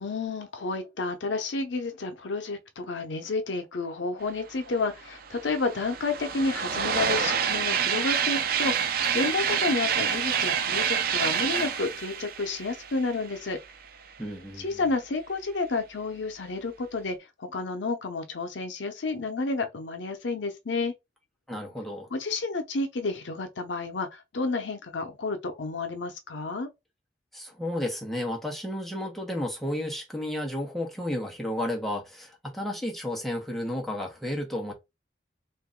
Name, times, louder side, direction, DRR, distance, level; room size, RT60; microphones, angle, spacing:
voice 1, 0.0-13.6 14.6-20.9 22.1-26.7, left 3 dB, 85° left, 0.7 m, -30 dB
sound 1, 4.8-4.9 5.1-13.7, right 7 dB, 50° right, 0.5 m, -28 dB
voice 2, 14.2-14.9 21.5-22.1 27.3-34.7, left 1 dB, ahead, 1.0 m, -32 dB
2.9 x 2.6 x 3.7 m
head